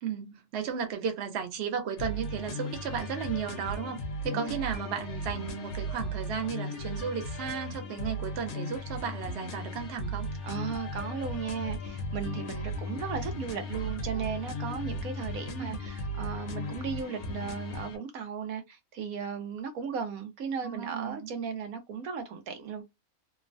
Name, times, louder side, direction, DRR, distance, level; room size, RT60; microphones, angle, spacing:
voice 1, 0.0-10.3 15.5-15.9 20.6-21.3, right 7 dB, 55° right, 0.9 m, -34 dB
sound 1, 2.0-18.0, left 1 dB, 60° left, 1.0 m, -36 dB
voice 2, 10.4-22.8, right 6 dB, 75° right, 1.1 m, -36 dB
3.0 x 2.1 x 2.5 m
omnidirectional pair, 1.5 m